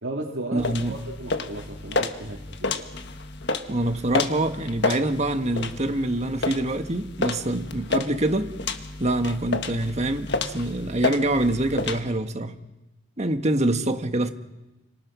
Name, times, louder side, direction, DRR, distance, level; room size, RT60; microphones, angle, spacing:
voice 1, 0.0-2.8, right 2 dB, 65° right, -3 dB, 3.3 m, -35 dB
voice 2, 0.5-1.0 3.7-8.5 9.0-12.5 13.2-14.3, right 1 dB, 30° right, 7 dB, 1.6 m, -25 dB
sound 1, 0.6-12.0, left 3 dB, 55° left, 1.5 m, -30 dB
29.5 x 27.0 x 6.3 m, 1.1 s
head